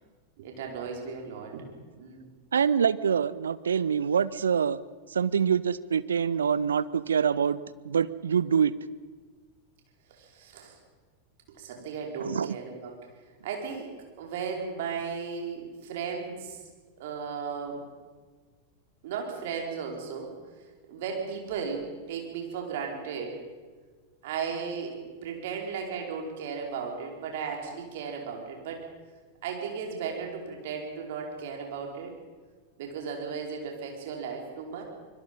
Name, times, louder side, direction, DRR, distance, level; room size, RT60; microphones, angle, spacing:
voice 1, 0.4-1.6 2.0-2.3 10.1-10.7 11.5-12.9 13.4-13.9 14.2-16.6 17.0-17.8 19.0-20.3 20.9-23.3 24.2-25.0 25.2-28.8 29.4-32.1 32.8-34.8, right 6 dB, 55° right, 1 dB, 4.8 m, -35 dB
voice 2, 2.5-4.8 5.1-8.7 12.2-12.6, right 7 dB, 70° right, 17 dB, 0.7 m, -25 dB
24.5 x 21.5 x 5.5 m, 1.5 s
figure-of-eight pair, 90°, 0 cm